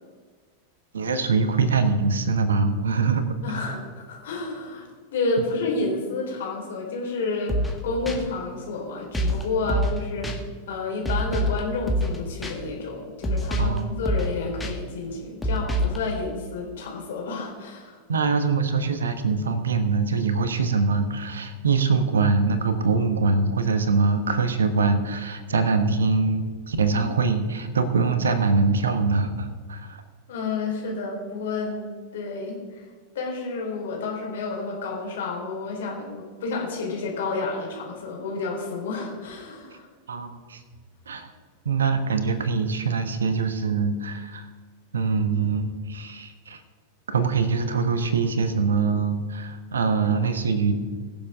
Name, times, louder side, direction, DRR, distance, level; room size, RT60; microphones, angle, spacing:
voice 1, 0.9-3.6 9.6-9.8 13.6-13.9 18.1-30.0 40.1-40.6 41.1-41.3 41.6-44.5 44.9-46.6 47.1-50.7, right 4 dB, 70° right, 10 dB, 1.2 m, -23 dB
voice 2, 3.4-10.4 10.7-18.0 30.3-31.8 32.1-32.9 33.1-39.9, left 3 dB, 60° left, -1 dB, 3.7 m, -30 dB
sound 1, 7.5-7.8 8.1-8.2 9.1-9.4 9.7-10.0 10.2-10.4 11.0-11.6 11.9-12.2 12.4-12.5 13.2-13.8 14.0-14.3 14.6-14.7 15.4-16.0, equal, 10° left, 1.8 m, -25 dB
22.0 x 7.3 x 3.6 m, 1.6 s
figure-of-eight pair, 90°, 0 cm